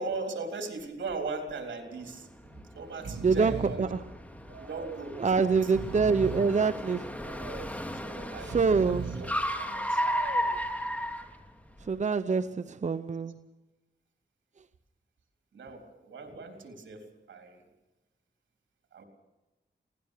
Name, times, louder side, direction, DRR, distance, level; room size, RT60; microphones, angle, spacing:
voice 1, 0.0-2.3 2.7-3.9 4.6-5.7 7.9-9.3 9.6-10.0 15.5-17.6 18.9-19.0, right 3 dB, 85° right, 3.8 m, -39 dB
Breathing, 0.8-1.1 1.5-1.6 2.4-2.6 2.9-3.9 4.5-5.1 5.6-6.6 7.2-7.8 8.3-9.4 9.9-10.6, right 4 dB, 65° right, 2.5 m, -39 dB
Car, 2.0-11.9, equal, 10° left, 2.9 m, -35 dB
voice 2, 5.2-7.1 8.5-9.1 11.8-13.4, right 5 dB, 40° right, 0.8 m, -26 dB
24.5 x 18.0 x 6.7 m
cardioid pair, 70°, 19 cm